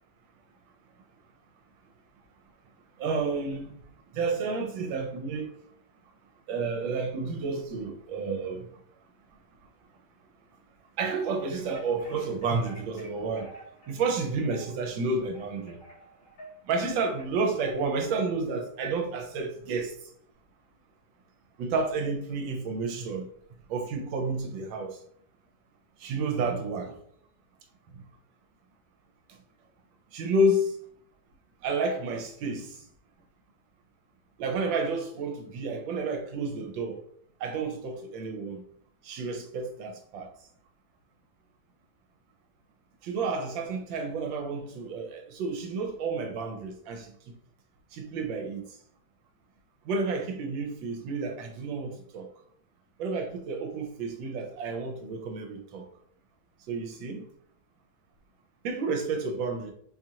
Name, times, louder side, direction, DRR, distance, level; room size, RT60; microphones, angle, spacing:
voice 1, 3.0-3.7 4.1-5.6 6.5-8.7 11.0-13.5 13.9-15.8 16.7-19.9 21.6-23.3 23.7-25.0 26.0-26.9 30.1-30.8 31.6-32.8 34.4-37.0 37.4-38.6 39.0-40.3 43.0-47.1 47.9-48.6 49.9-52.3 53.0-55.8 56.7-57.3 58.6-59.7, right 3 dB, 80° right, 1.3 m, -30 dB
sound 1, 11.6-18.2, right 1 dB, 75° left, 2.3 m, -50 dB
4.4 x 2.4 x 2.8 m
omnidirectional pair, 2.1 m